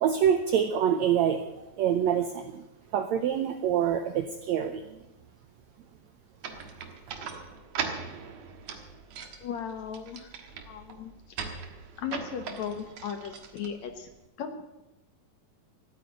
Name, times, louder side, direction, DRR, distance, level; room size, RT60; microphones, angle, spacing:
voice 1, 0.0-2.6 2.9-5.0, right 9 dB, 90° right, 8 dB, 1.6 m, -26 dB
sound 1, 6.4-14.2, right 6 dB, 60° right, 2.2 m, -40 dB
voice 2, 9.4-10.3 10.7-11.4 12.0-14.1 14.4-14.8, left 7 dB, 65° left, 7 dB, 2.1 m, -37 dB
14.0 x 9.3 x 8.9 m, 0.97 s
omnidirectional pair, 4.1 m